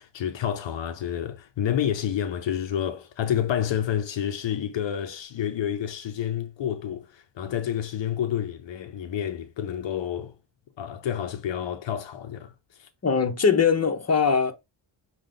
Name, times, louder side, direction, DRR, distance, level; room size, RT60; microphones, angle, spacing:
voice 1, 0.0-10.4 10.8-12.9, left 9 dB, 75° left, 0.6 m, -29 dB
voice 2, 13.0-14.5, left 6 dB, 35° left, 0.9 m, -21 dB
6.2 x 2.2 x 3.8 m
cardioid pair, 75°, 44 cm